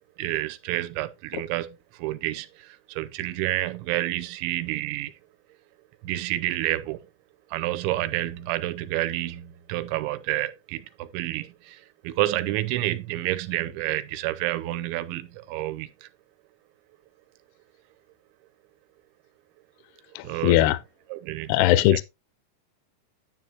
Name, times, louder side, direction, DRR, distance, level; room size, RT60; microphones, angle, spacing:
voice 1, 0.2-5.1 6.0-7.1 7.5-16.1 20.2-20.7 21.1-21.9, right 15 dB, 85° right, 3.1 m, -29 dB
voice 2, 20.2-20.8 21.5-22.0, left 15 dB, 80° left, 2.4 m, -20 dB
10.0 x 8.8 x 2.9 m
omnidirectional pair, 5.2 m